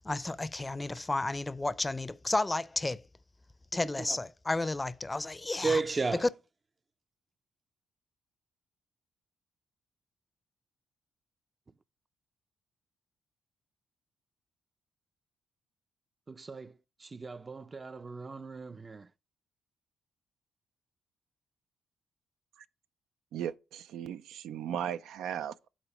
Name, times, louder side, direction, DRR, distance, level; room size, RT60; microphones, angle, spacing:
voice 1, 0.0-3.0 3.7-5.7, left 2 dB, 20° left, 0.5 m, -32 dB
voice 2, 3.7-4.2 5.6-6.3 11.7-11.8 16.3-19.1, right 4 dB, 30° right, 0.5 m, -35 dB
voice 3, 23.3-25.7, right 9 dB, 85° right, 0.4 m, -37 dB
10.0 x 4.1 x 4.8 m
cardioid pair, 85°, 0 cm